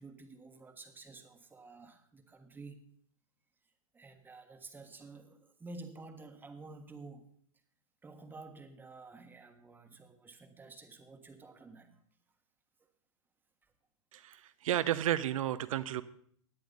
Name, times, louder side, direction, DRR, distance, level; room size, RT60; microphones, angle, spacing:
voice 1, 0.0-2.8 3.9-7.3 8.0-12.0, right 3 dB, 10° right, 6 dB, 1.4 m, -51 dB
voice 2, 14.1-16.0, right 12 dB, 70° right, 15 dB, 0.9 m, -32 dB
17.5 x 10.0 x 4.0 m, 0.62 s
hypercardioid pair, 125°, 18 cm